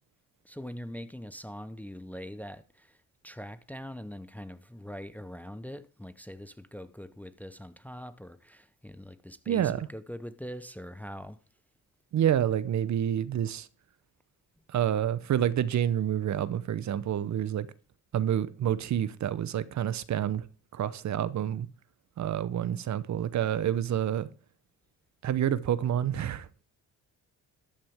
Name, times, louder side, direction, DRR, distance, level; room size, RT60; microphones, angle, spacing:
voice 1, 0.4-3.0 3.2-11.4, equal, 5° left, 0.6 m, -42 dB
voice 2, 9.5-9.9 12.1-13.7 14.7-17.7 18.1-20.5 20.7-21.7 22.2-24.3 25.2-26.5, right 10 dB, 55° right, 0.8 m, -28 dB
13.0 x 8.8 x 3.5 m
supercardioid pair, 75°, 34 cm